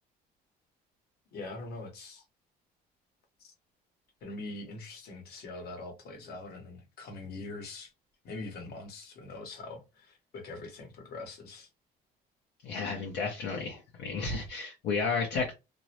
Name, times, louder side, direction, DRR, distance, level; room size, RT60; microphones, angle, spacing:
voice 1, 1.3-2.2 3.4-3.5 4.2-7.9 8.2-11.7, left 2 dB, 70° left, 1.1 m, -43 dB
voice 2, 12.6-15.5, left 4 dB, 85° left, 0.8 m, -32 dB
2.6 x 2.0 x 2.8 m
cardioid pair, 110°, 17 cm